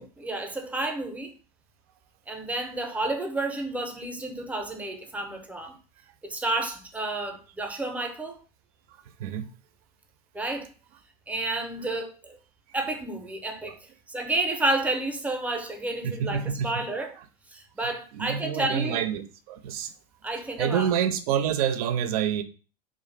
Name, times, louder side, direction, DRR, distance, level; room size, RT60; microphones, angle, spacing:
voice 1, 0.0-1.3 2.3-5.7 6.2-8.4 10.3-10.7 11.3-12.4 12.7-13.7 14.1-17.1 17.5-19.0 20.2-20.8, right 2 dB, 5° right, 0.5 m, -30 dB
voice 2, 9.0-9.5 11.9-12.0 16.0-16.9 17.2-17.3 18.1-19.9 20.6-22.4, right 8 dB, 65° right, 0.4 m, -28 dB
2.4 x 2.0 x 3.2 m
hypercardioid pair, 85°, 21 cm